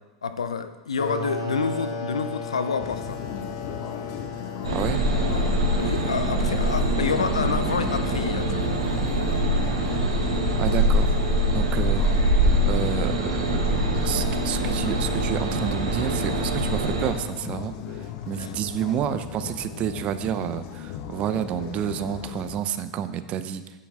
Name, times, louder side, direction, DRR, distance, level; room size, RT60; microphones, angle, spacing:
voice 1, 0.2-3.2 5.8-8.8 18.4-18.5, left 5 dB, 85° left, 10 dB, 0.6 m, -28 dB
sound 1, 1.0-9.4, left 3 dB, 70° left, 2.1 m, -36 dB
sound 2, 2.8-22.6, left 9 dB, 55° left, 0.9 m, -37 dB
sound 3, 4.6-17.1, right 1 dB, 85° right, 1.8 m, -24 dB
voice 2, 4.7-5.0 10.6-11.2 11.5-12.1 12.6-13.7 14.0-23.6, right 9 dB, 40° right, 11 dB, 0.7 m, -29 dB
10.0 x 8.7 x 3.6 m, 1.2 s
hypercardioid pair, 95°, 3 cm